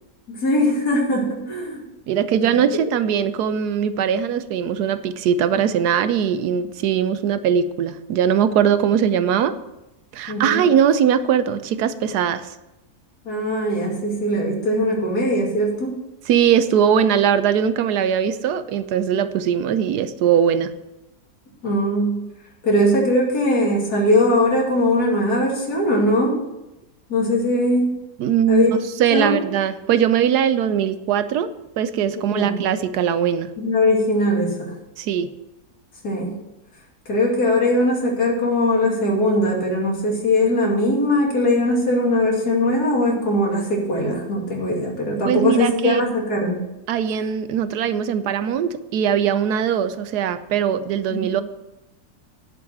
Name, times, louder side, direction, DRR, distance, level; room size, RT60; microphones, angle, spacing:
voice 1, 0.3-1.8 10.3-10.6 13.3-16.0 21.6-22.1 22.6-26.4 27.1-28.0 28.5-28.7 29.1-29.3 32.3-32.6 33.6-34.7 36.0-36.3 37.1-46.6 51.1-51.2, left 1 dB, 75° left, -1 dB, 3.0 m, -20 dB
voice 2, 2.1-9.5 10.1-12.5 16.3-20.7 28.2-31.5 31.8-33.5 35.0-35.3 45.2-46.0 46.9-51.4, right 8 dB, 85° right, 12 dB, 1.2 m, -20 dB
10.5 x 5.3 x 7.7 m, 0.94 s
omnidirectional pair, 1.6 m